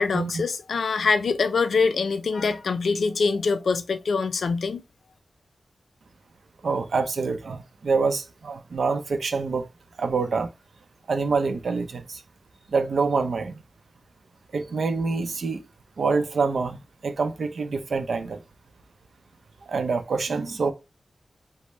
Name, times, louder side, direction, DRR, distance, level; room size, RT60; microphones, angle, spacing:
voice 1, 0.0-4.8, left 4 dB, 90° left, 0.4 m, -24 dB
voice 2, 6.6-9.7 10.0-10.5 11.1-12.2 12.7-13.6 14.5-15.6 16.0-18.4 19.7-20.7, right 4 dB, 75° right, 0.5 m, -26 dB
5.1 x 2.1 x 4.2 m
wide cardioid pair, 105°, 0 cm